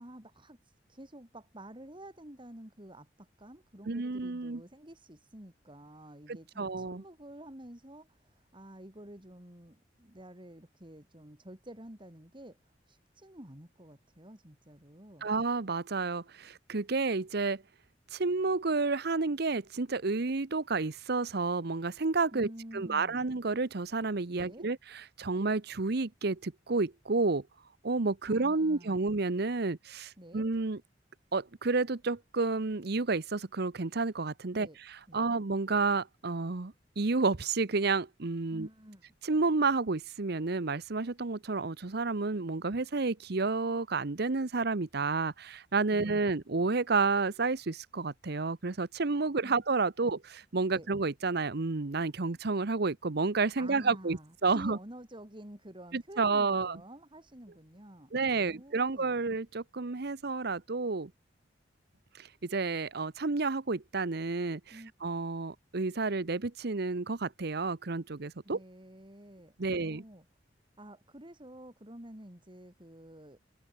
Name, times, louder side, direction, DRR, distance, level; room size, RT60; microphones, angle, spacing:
voice 1, 0.0-12.6 12.9-15.3 22.3-23.3 24.3-24.7 28.3-29.0 30.2-30.5 34.5-34.8 35.1-35.4 38.5-39.1 45.9-46.4 49.4-49.6 50.0-50.2 50.7-50.9 53.6-59.2 64.7-64.9 68.4-70.2 70.8-73.4, right 1 dB, 25° right, 5.4 m, -50 dB
voice 2, 3.9-4.6 6.3-7.0 15.2-17.6 18.1-22.5 22.7-27.4 27.8-30.8 31.3-38.7 39.2-54.8 55.9-56.8 58.1-61.1 62.2-68.6 69.6-70.0, right 3 dB, 60° right, 0.9 m, -30 dB
head